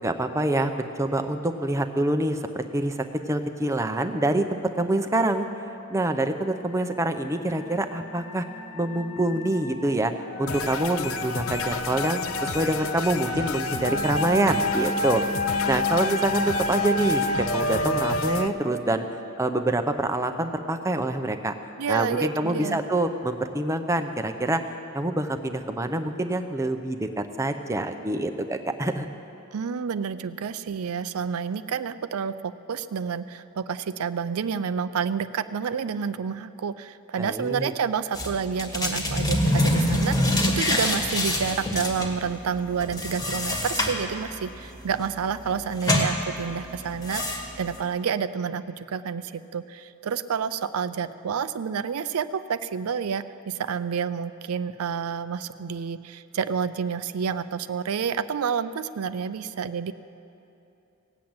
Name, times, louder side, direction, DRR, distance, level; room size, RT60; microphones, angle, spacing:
voice 1, 0.0-5.5 5.9-8.4 8.7-15.2 15.7-19.1 19.4-21.5 21.9-24.6 24.9-29.1 37.2-37.7, right 1 dB, 15° right, 7 dB, 0.6 m, -26 dB
sound 1, 6.4-18.5, left 1 dB, 40° left, 0.9 m, -30 dB
sound 2, 10.5-18.5, left 6 dB, 65° left, 0.6 m, -33 dB
voice 2, 21.8-22.8 29.5-59.9, right 6 dB, 75° right, 13 dB, 0.4 m, -29 dB
sound 3, 38.1-47.8, left 1 dB, 15° left, 1.4 m, -26 dB
17.5 x 7.7 x 8.8 m, 2.8 s
head